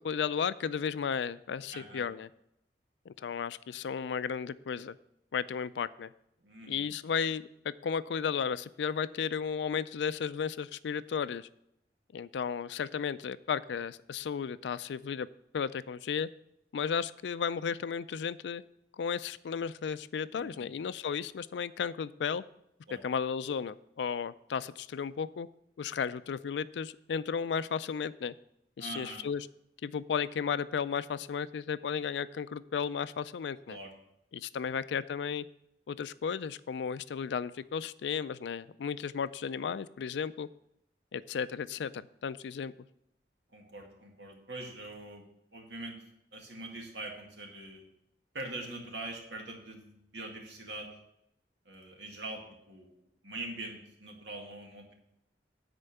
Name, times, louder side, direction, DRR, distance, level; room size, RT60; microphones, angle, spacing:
voice 1, 0.0-2.3 3.1-5.0 5.3-6.1 6.7-11.5 12.1-15.3 15.5-16.3 16.7-18.6 19.0-22.4 23.0-25.5 25.8-28.3 28.8-29.5 29.8-33.8 34.3-35.5 35.9-40.5 41.1-42.7, left 6 dB, 80° left, 16 dB, 0.4 m, -34 dB
voice 2, 1.7-2.1 6.4-6.9 20.3-20.7 22.9-23.0 28.8-29.2 33.7-33.9 34.5-34.7 43.5-45.2 45.5-46.0 46.3-47.8 48.3-50.9 51.7-54.9, right 2 dB, 85° right, 1 dB, 1.9 m, -43 dB
9.9 x 4.4 x 6.9 m, 0.79 s
head